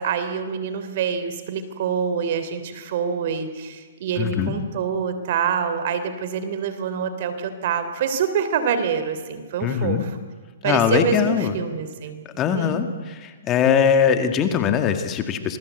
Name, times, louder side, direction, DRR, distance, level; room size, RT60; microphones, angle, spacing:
voice 1, 0.0-10.1 10.6-12.8, right 7 dB, 50° right, 10 dB, 3.2 m, -26 dB
voice 2, 4.2-4.6 9.6-10.0 10.6-11.5 12.4-15.6, left 7 dB, 25° left, 7 dB, 1.9 m, -21 dB
26.5 x 20.0 x 8.2 m, 1.4 s
hypercardioid pair, 150°, 0 cm